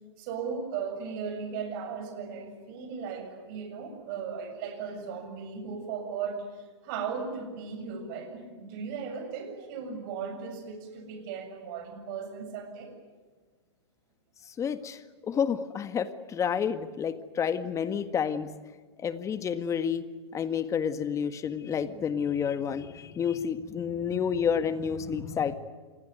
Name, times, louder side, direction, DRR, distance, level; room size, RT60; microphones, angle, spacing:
voice 1, 0.2-6.4 6.8-12.9, right 6 dB, 45° right, 6 dB, 7.4 m, -37 dB
voice 2, 14.6-18.5 19.0-20.0 20.3-25.5, left 7 dB, 20° left, 12 dB, 1.8 m, -30 dB
28.0 x 21.5 x 9.5 m, 1.5 s
hypercardioid pair, 115°, 15 cm